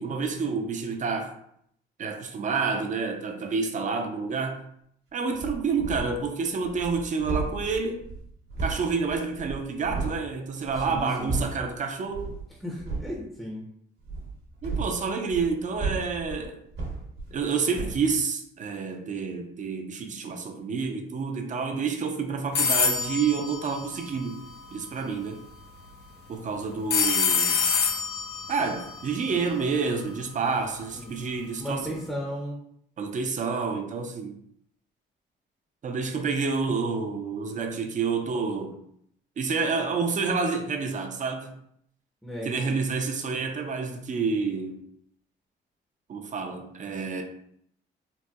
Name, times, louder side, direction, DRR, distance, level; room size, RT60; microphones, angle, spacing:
voice 1, 0.0-1.3 2.0-4.6 5.1-8.0 8.6-12.3 14.6-16.6 17.3-24.4 24.7-25.4 26.3-27.7 28.5-32.1 33.0-34.3 35.8-38.8 39.4-41.6 42.4-44.8 46.1-47.2, right 5 dB, 40° right, 0.5 m, -29 dB
sound 1, 5.3-6.3 6.6-10.2 10.6-11.7 12.1-12.4 12.8-13.2 14.0-17.5 17.7-18.1, right 3 dB, 60° right, 1.1 m, -34 dB
voice 2, 10.8-11.4 12.6-13.6 30.9-31.1 31.6-32.6 42.2-42.7, equal, ahead, 0.6 m, -35 dB
sound 2, 22.6-24.6 26.9-29.9, left 6 dB, 55° left, 0.5 m, -27 dB
4.0 x 2.1 x 2.3 m
cardioid pair, 90°, 20 cm